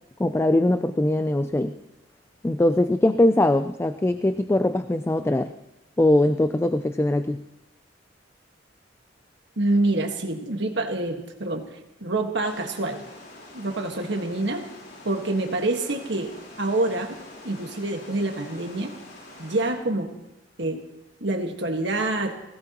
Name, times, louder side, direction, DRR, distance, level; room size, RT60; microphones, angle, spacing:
voice 1, 0.2-1.8 2.4-5.5 6.0-7.4, left 1 dB, 15° left, 10 dB, 0.4 m, -21 dB
voice 2, 9.6-13.0 13.5-14.6 15.0-17.2 17.4-18.9 19.4-20.1 20.6-20.8 21.2-22.4, right 2 dB, 70° right, 4 dB, 1.6 m, -26 dB
sound 1, 12.4-19.7, left 1 dB, 60° left, 4.2 m, -45 dB
19.5 x 16.5 x 3.0 m, 0.95 s
head